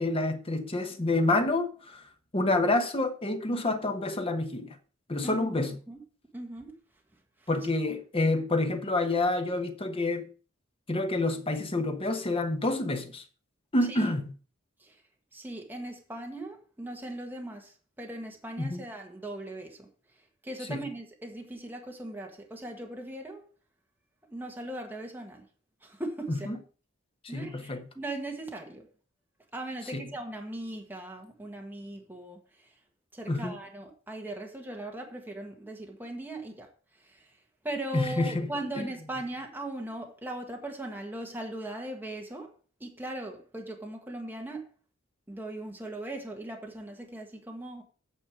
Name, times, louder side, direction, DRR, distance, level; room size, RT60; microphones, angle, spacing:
voice 1, 0.0-2.0 2.3-4.8 5.1-5.8 7.5-10.3 10.9-13.2 13.7-14.3 18.6-18.8 20.7-20.8 26.3-26.6 27.2-27.9 29.9-30.1 33.3-33.6 37.9-38.5 38.8-38.9, left 2 dB, 30° left, 1.1 m, -28 dB
voice 2, 5.2-5.5 5.9-6.0 6.3-6.7 13.9-14.0 14.8-14.9 15.3-19.9 20.4-23.4 24.3-25.4 25.8-26.5 27.3-28.9 29.5-32.4 33.1-36.7 37.1-37.2 37.6-42.5 42.8-44.6 45.3-47.8, right 1 dB, 10° right, 1.5 m, -39 dB
8.9 x 6.4 x 5.0 m
head